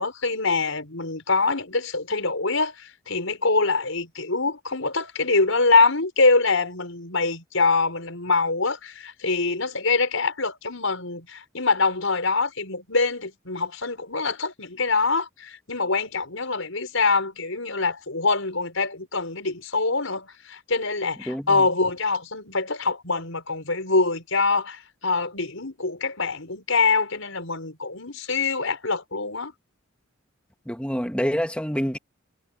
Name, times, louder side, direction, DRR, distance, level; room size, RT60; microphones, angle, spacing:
voice 1, 0.0-29.5, left 3 dB, 80° left, 5.3 m, -24 dB
voice 2, 21.3-21.7 30.7-32.0, equal, 5° left, 1.8 m, -27 dB
head